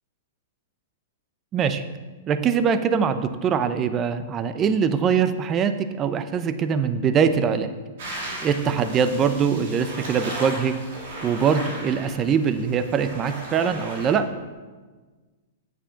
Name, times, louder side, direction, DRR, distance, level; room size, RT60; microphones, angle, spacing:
voice 1, 1.5-1.8 2.3-7.7 8.4-10.7 11.2-14.3, right 6 dB, 25° right, 11 dB, 0.6 m, -22 dB
sound 1, 8.0-14.1, right 1 dB, 70° right, 3.1 m, -36 dB
9.0 x 6.8 x 5.7 m, 1.4 s
hypercardioid pair, 135°, 0 cm